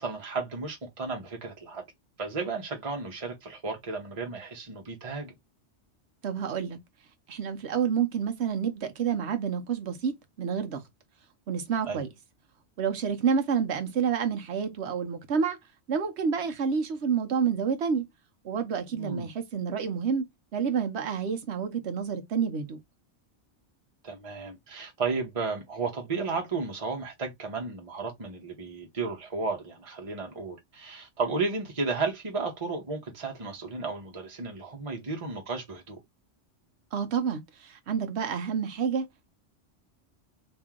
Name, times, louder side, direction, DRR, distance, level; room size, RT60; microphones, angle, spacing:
voice 1, 0.0-1.8 2.2-5.3 11.8-12.0 18.9-19.3 24.0-36.0, right 4 dB, 30° right, 1.0 m, -33 dB
voice 2, 6.2-6.8 7.3-10.8 11.5-12.1 12.8-15.6 15.9-18.1 18.4-20.2 20.5-22.8 36.9-39.1, right 6 dB, 70° right, 1.1 m, -29 dB
3.0 x 2.6 x 3.6 m
omnidirectional pair, 1.2 m